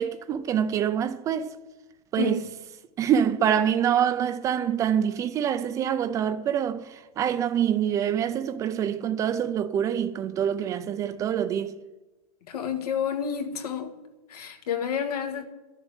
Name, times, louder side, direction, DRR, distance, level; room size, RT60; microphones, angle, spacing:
voice 1, 0.0-1.5 2.1-2.4 3.0-11.8, right 9 dB, 15° right, 0.4 m, -25 dB
voice 2, 2.2-2.5 12.5-14.0 14.3-15.5, left 8 dB, 85° left, 1.8 m, -30 dB
12.5 x 7.2 x 9.9 m
supercardioid pair, 160°, 19 cm